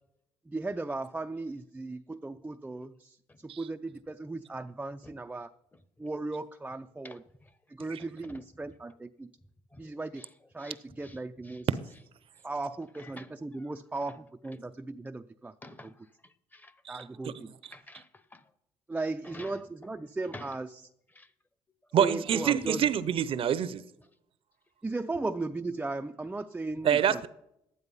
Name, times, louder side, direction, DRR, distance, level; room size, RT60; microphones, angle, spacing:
voice 1, 0.5-5.5 6.0-7.2 7.7-9.3 9.8-10.2 10.5-11.7 12.4-15.5 15.8-15.9 16.9-17.5 18.9-20.9 22.0-22.9 24.8-27.2, right 3 dB, 10° right, 0.5 m, -36 dB
voice 2, 7.0-7.5 8.0-8.4 9.7-9.8 10.2-10.3 10.6-11.2 11.4-11.6 12.9-13.3 13.5-13.7 14.1-14.2 15.6-15.9 16.2-16.7 17.7-18.4 19.2-19.6 20.3-20.6 21.1-21.3, left 2 dB, 15° left, 1.0 m, -50 dB
voice 3, 21.9-23.8 26.8-27.3, right 9 dB, 55° right, 0.7 m, -26 dB
12.0 x 9.7 x 5.5 m
cardioid pair, 90°, 11 cm